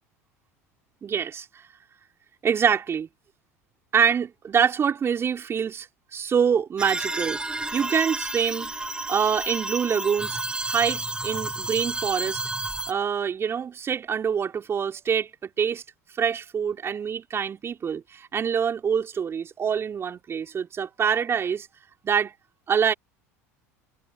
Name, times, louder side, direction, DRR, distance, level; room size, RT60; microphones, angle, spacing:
voice 1, 1.0-1.5 2.4-3.1 3.9-5.9 6.1-7.4 7.7-8.7 9.1-10.4 10.6-12.4 12.9-15.8 16.2-21.7 22.0-22.3 22.7-22.9, right 7 dB, 30° right, 3.8 m, -25 dB
sound 1, 6.8-12.9, right 2 dB, 10° right, 2.3 m, -31 dB
hypercardioid pair, 75°, 8 cm